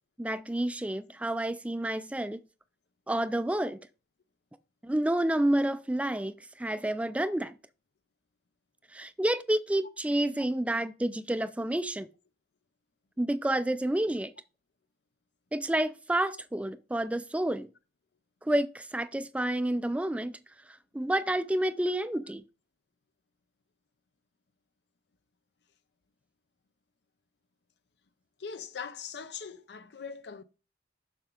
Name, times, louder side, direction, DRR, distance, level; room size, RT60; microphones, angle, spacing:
voice 1, 0.2-2.4 3.1-3.8 4.8-7.5 8.9-12.1 13.2-14.3 15.5-17.7 18.4-20.4 20.7-22.4, right 1 dB, 10° right, 0.3 m, -29 dB
voice 2, 28.4-30.4, left 6 dB, 70° left, 0.6 m, -41 dB
7.0 x 5.9 x 3.7 m
head